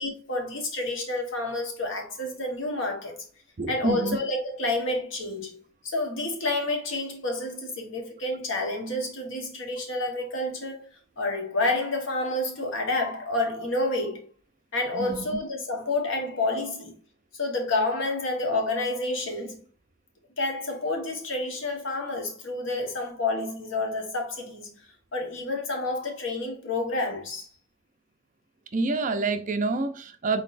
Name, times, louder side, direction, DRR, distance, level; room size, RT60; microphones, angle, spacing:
voice 1, 0.0-3.1 3.7-10.9 11.2-14.2 14.7-17.0 17.3-19.6 20.4-24.7 25.1-27.5, left 2 dB, 70° left, 1.2 m, -29 dB
voice 2, 3.6-4.2 14.9-15.3 28.7-30.4, right 3 dB, 40° right, 0.5 m, -27 dB
4.0 x 4.0 x 2.5 m
head